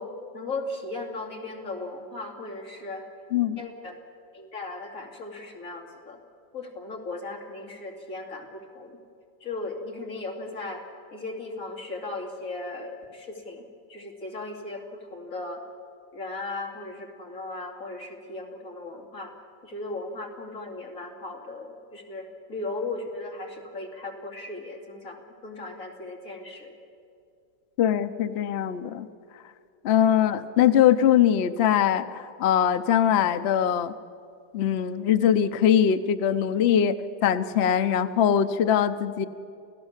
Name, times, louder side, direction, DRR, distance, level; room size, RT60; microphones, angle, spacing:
voice 1, 0.0-3.1 3.6-4.0 4.3-6.2 6.5-9.0 9.4-10.8 11.1-15.6 16.1-19.3 19.6-26.7, left 2 dB, 45° left, 0 dB, 3.2 m, -37 dB
voice 2, 27.8-29.1 29.8-33.9 34.5-37.0 37.2-39.2, left 9 dB, 65° left, 11 dB, 0.6 m, -22 dB
29.0 x 16.5 x 7.3 m, 2.4 s
omnidirectional pair, 1.9 m